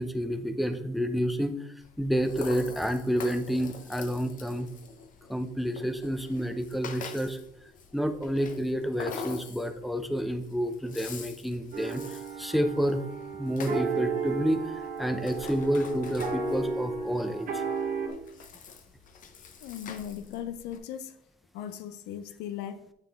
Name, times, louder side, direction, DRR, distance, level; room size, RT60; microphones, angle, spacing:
voice 1, 0.0-1.6 2.0-4.7 5.3-7.4 7.9-13.0 13.4-14.6 15.0-17.6, equal, ahead, 0.5 m, -29 dB
Rattle (instrument), 1.8-20.8, left 5 dB, 50° left, 0.8 m, -45 dB
sound 1, 11.7-18.1, right 5 dB, 55° right, 1.2 m, -33 dB
voice 2, 19.6-21.1 21.5-22.9, left 10 dB, 85° left, 0.5 m, -38 dB
8.9 x 3.6 x 3.5 m
cardioid pair, 110°, 17 cm